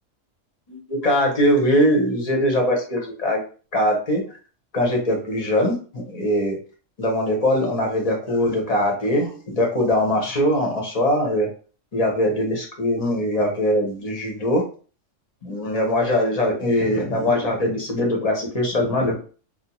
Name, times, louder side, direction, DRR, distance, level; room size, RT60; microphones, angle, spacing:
voice 1, 0.7-3.4 3.7-4.2 4.7-5.8 6.1-6.6 7.0-11.5 11.9-14.6 15.4-19.2, left 1 dB, 35° left, 1 dB, 0.7 m, -21 dB
2.7 x 2.1 x 2.8 m, 0.39 s
omnidirectional pair, 1.3 m